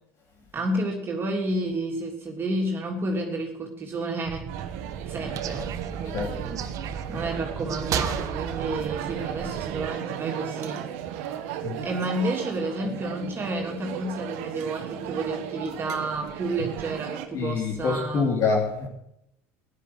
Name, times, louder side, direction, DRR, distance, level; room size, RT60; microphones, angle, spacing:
voice 1, 0.5-4.5 5.1-6.6 7.1-10.9 11.8-18.4, right 2 dB, 30° right, 0 dB, 3.2 m, -30 dB
sound 1, 4.2-9.9, right 7 dB, 50° right, 1.5 m, -34 dB
sound 2, 4.5-17.3, right 10 dB, 75° right, 1.7 m, -35 dB
voice 2, 17.3-18.9, left 4 dB, 50° left, -1 dB, 3.1 m, -25 dB
15.0 x 11.5 x 6.2 m, 0.79 s
supercardioid pair, 95°, 8 cm